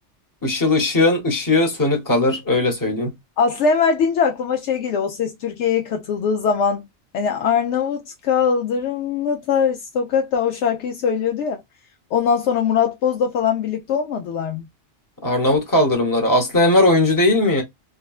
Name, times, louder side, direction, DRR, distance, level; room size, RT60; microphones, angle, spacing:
voice 1, 0.4-3.1 15.2-17.6, left 2 dB, 20° left, 0.8 m, -18 dB
voice 2, 3.4-6.9 7.1-11.6 12.1-14.6, left 6 dB, 80° left, 0.9 m, -21 dB
3.5 x 2.1 x 2.3 m
omnidirectional pair, 1.2 m